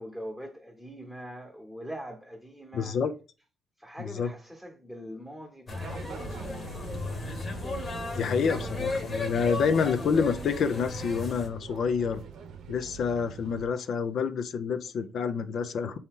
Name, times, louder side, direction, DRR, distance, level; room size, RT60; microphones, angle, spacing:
voice 1, 0.0-3.0 3.8-7.0 7.8-8.7 9.2-9.7 13.8-13.9, equal, 5° left, 1.1 m, -43 dB
voice 2, 2.7-3.1 4.0-4.3 8.1-12.2 12.7-16.0, left 6 dB, 65° left, 0.5 m, -28 dB
Caminando en Tianguis, 5.7-11.5, left 2 dB, 40° left, 1.1 m, -35 dB
sound 1, 5.8-13.7, right 7 dB, 75° right, 0.7 m, -44 dB
4.3 x 2.8 x 3.6 m
cardioid pair, 90°, 0 cm